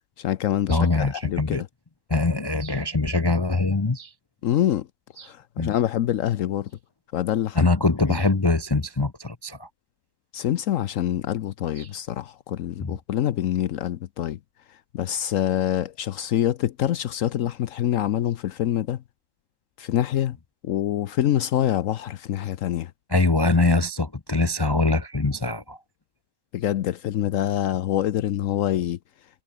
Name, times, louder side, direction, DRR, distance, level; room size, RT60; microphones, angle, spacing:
voice 1, 0.2-1.7 4.4-4.9 5.2-6.7 7.1-7.7 8.1-8.2 10.3-14.4 14.7-19.0 19.8-20.4 20.6-22.9 26.5-29.0, left 12 dB, 75° left, 1.1 m, -25 dB
voice 2, 0.7-1.6 2.1-4.1 5.2-5.3 5.6-5.7 7.6-9.7 11.8-11.9 12.8-12.9 23.1-25.8, left 3 dB, 25° left, 0.7 m, -23 dB
omnidirectional pair, 1.4 m